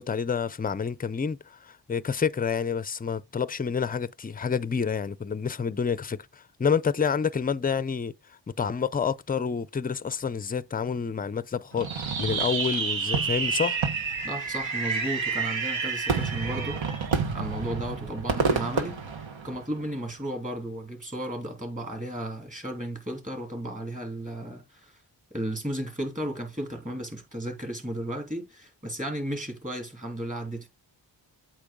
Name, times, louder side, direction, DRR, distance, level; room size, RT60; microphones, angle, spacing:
voice 1, 0.0-8.1 8.6-13.8, left 6 dB, 20° left, 0.4 m, -28 dB
Fireworks, 11.8-19.9, right 5 dB, 85° right, 1.3 m, -29 dB
voice 2, 14.2-16.8 17.3-19.0 19.4-25.0 25.3-30.7, right 1 dB, 15° right, 2.9 m, -34 dB
8.4 x 3.0 x 5.0 m
wide cardioid pair, 65°, 45 cm